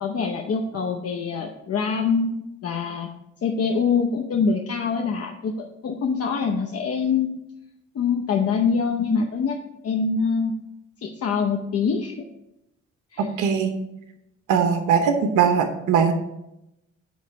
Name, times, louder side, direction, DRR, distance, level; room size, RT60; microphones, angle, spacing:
voice 1, 0.0-3.1 3.4-7.3 7.9-9.6 9.8-10.5 11.0-12.2 13.1-13.3, left 5 dB, 50° left, 2 dB, 0.8 m, -24 dB
voice 2, 13.2-13.8 14.5-16.1, right 7 dB, 90° right, 5 dB, 0.9 m, -20 dB
9.5 x 3.2 x 5.8 m, 0.86 s
cardioid pair, 110°, 30 cm